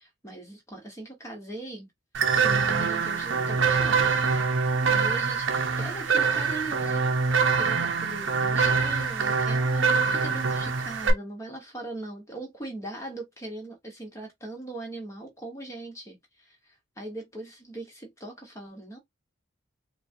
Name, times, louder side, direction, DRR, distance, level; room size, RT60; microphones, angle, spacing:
voice 1, 0.0-1.9 2.4-4.6 4.9-7.1 7.4-19.0, right 1 dB, 15° left, 1.3 m, -40 dB
sound 1, 2.1-11.1, right 5 dB, 65° right, 0.7 m, -24 dB
4.4 x 2.4 x 2.6 m
head